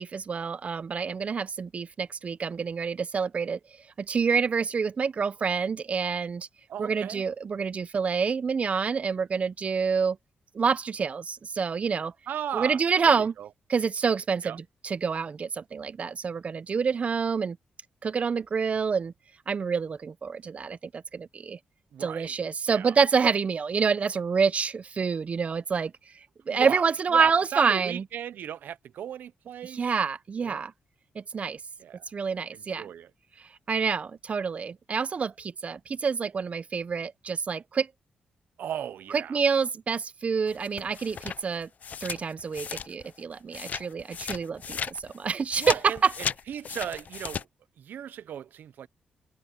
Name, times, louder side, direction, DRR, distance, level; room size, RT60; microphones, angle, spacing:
voice 1, 0.0-3.6 4.0-6.5 6.8-10.2 10.5-12.1 12.5-13.3 13.7-17.6 18.0-19.1 19.5-21.6 22.0-25.9 26.5-28.0 29.6-30.7 31.2-31.6 32.1-32.9 33.7-37.9 39.1-41.7 42.0-46.1, right 5 dB, 45° right, 0.7 m, -27 dB
voice 2, 6.7-7.3 12.3-13.5 14.4-14.6 21.9-22.4 22.7-23.0 26.5-26.8 27.1-29.9 30.4-30.6 31.8-32.0 32.5-33.1 38.6-39.4 45.6-47.5 47.8-48.9, right 10 dB, 75° right, 0.7 m, -36 dB
sound 1, 40.5-43.2 43.5-47.4, left 7 dB, 55° left, 0.5 m, -36 dB
cardioid pair, 85°, 3 cm